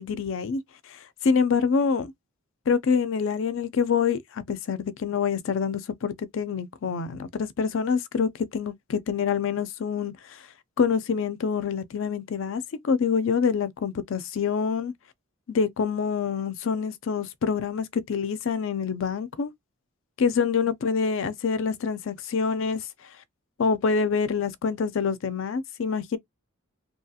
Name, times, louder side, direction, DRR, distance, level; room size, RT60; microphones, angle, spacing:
voice 1, 0.0-2.1 2.7-10.5 10.8-14.9 15.5-19.5 20.2-23.1 23.6-26.2, left 6 dB, 55° left, 0.4 m, -26 dB
2.8 x 2.3 x 2.7 m
head